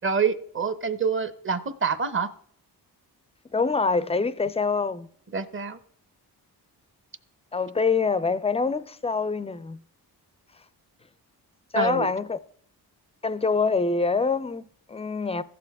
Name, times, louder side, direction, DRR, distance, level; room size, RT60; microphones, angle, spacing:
voice 1, 0.0-2.3 5.3-5.8 11.8-12.1, right 5 dB, 30° right, 0.7 m, -26 dB
voice 2, 3.5-5.1 7.5-9.8 11.7-12.4 13.2-15.4, left 4 dB, 15° left, 0.4 m, -25 dB
15.0 x 6.9 x 3.5 m
cardioid pair, 80°, 40 cm